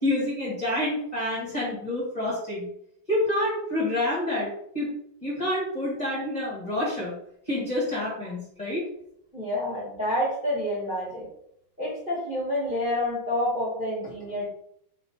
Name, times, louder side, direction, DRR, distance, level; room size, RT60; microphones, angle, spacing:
voice 1, 0.0-2.7 3.1-4.9 5.2-7.1 7.5-8.8, left 1 dB, 25° left, -8 dB, 1.3 m, -28 dB
voice 2, 9.3-11.3 11.8-14.5, left 1 dB, 5° right, -5 dB, 1.3 m, -28 dB
3.2 x 3.1 x 4.4 m, 0.73 s
omnidirectional pair, 2.2 m